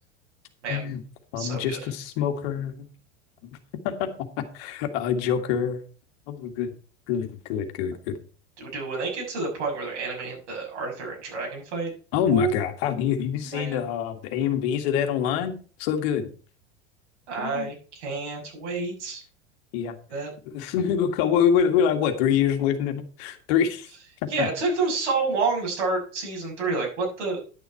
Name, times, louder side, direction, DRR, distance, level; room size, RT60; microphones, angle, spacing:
voice 1, 0.7-1.0 1.3-2.9 3.4-3.5 3.8-4.1 4.4-5.8 6.3-6.7 7.1-8.2 12.1-15.5 15.8-16.3 17.4-17.7 19.7-20.0 20.5-23.9 24.2-24.5, left 8 dB, 60° left, 6 dB, 1.9 m, -25 dB
voice 2, 1.4-1.8 8.6-11.9 12.3-12.5 13.4-13.8 17.3-19.2 20.1-20.3 24.3-27.4, right 3 dB, 75° right, -1 dB, 6.6 m, -29 dB
11.0 x 7.1 x 4.5 m, 0.39 s
hypercardioid pair, 95°, 35 cm